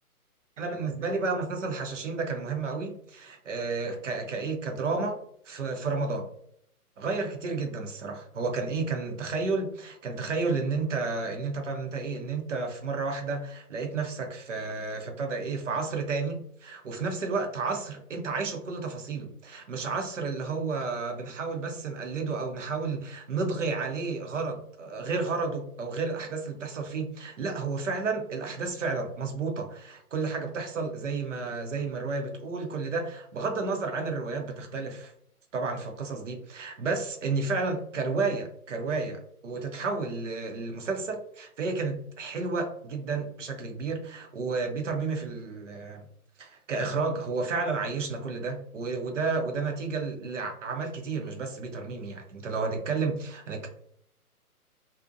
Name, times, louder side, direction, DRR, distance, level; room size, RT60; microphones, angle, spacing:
voice 1, 0.6-5.2 5.4-6.3 7.0-35.1 35.5-46.0 46.4-53.7, right 4 dB, 55° right, 4 dB, 0.6 m, -31 dB
2.5 x 2.0 x 2.5 m, 0.66 s
hypercardioid pair, 150°, 46 cm